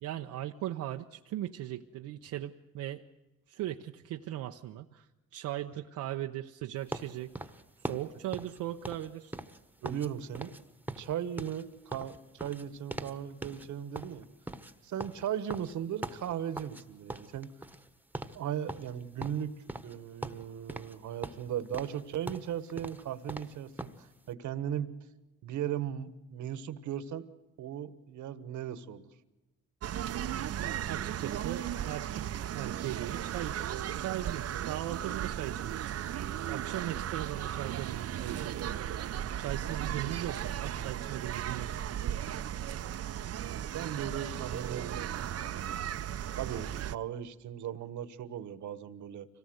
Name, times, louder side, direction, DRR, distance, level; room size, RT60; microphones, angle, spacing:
voice 1, 0.0-3.0 3.5-7.4 7.8-9.3 30.6-33.6 34.0-35.9 36.4-38.8 39.4-41.9, right 13 dB, 90° right, 3 dB, 0.8 m, -38 dB
sound 1, 6.9-10.1 10.3-10.6 10.9-13.2 13.4-13.7 13.9-16.8 17.1-17.9 18.1-18.4 18.7-20.0 20.2-21.0 21.2-24.0, right 1 dB, 5° right, 1.2 m, -41 dB
voice 2, 9.8-10.5 11.0-14.3 14.8-17.5 18.3-19.5 19.8-24.9 25.4-27.3 27.6-29.1 43.7-45.9 46.3-49.3, right 10 dB, 75° right, 14 dB, 1.4 m, -37 dB
sound 2, 29.8-47.0, right 10 dB, 55° right, 0.7 m, -36 dB
24.5 x 18.0 x 7.9 m, 1.1 s
cardioid pair, 90°, 30 cm